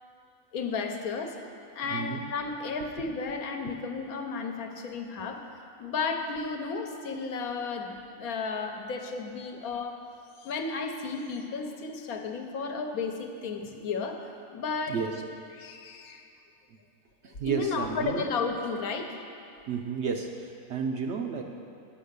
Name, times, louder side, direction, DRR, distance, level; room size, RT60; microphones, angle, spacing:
voice 1, 0.5-10.0 10.4-15.0 15.6-16.2 17.4-19.2, left 4 dB, 75° left, 4 dB, 1.2 m, -33 dB
voice 2, 1.9-2.2 3.6-3.7 14.9-15.2 16.7-16.8 17.2-18.3 19.7-21.4, right 6 dB, 65° right, 3 dB, 0.7 m, -32 dB
10.0 x 5.6 x 6.7 m, 2.5 s
omnidirectional pair, 1.5 m